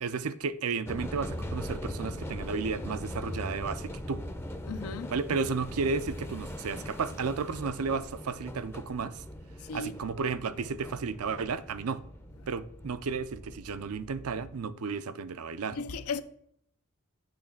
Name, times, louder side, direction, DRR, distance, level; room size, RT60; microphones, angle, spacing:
voice 1, 0.0-4.2 5.1-9.2 9.7-12.0 12.5-15.8, right 5 dB, 70° right, 0.5 m, -33 dB
sound 1, 0.9-14.6, equal, 10° left, 0.6 m, -40 dB
voice 2, 4.7-5.2 9.6-10.0 15.7-16.2, left 5 dB, 70° left, 0.6 m, -36 dB
8.9 x 3.2 x 5.8 m
head